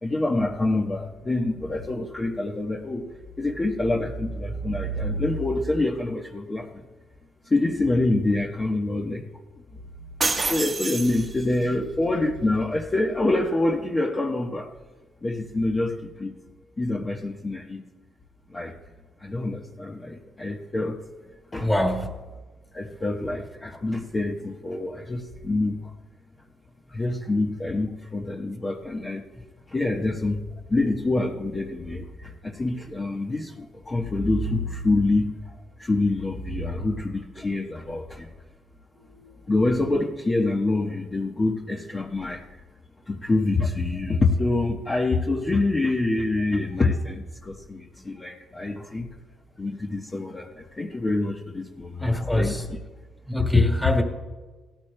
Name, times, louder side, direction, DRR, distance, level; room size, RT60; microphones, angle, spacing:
voice 1, 0.0-3.0 3.4-6.8 7.4-9.2 10.4-14.7 15.2-16.3 16.8-17.8 18.5-18.8 19.2-21.0 21.5-21.7 22.7-25.8 26.9-29.2 29.7-30.4 30.7-38.3 39.5-42.6 43.1-49.1 49.6-52.8 53.4-53.9, left 2 dB, 25° left, -1 dB, 1.1 m, -26 dB
sound 1, 10.2-11.7, right 3 dB, 30° right, 1.2 m, -27 dB
voice 2, 21.6-22.1 39.2-39.3 52.0-52.6 53.3-54.0, left 1 dB, 5° left, 3 dB, 2.1 m, -24 dB
18.0 x 13.0 x 2.2 m, 1.3 s
cardioid pair, 90°, 0 cm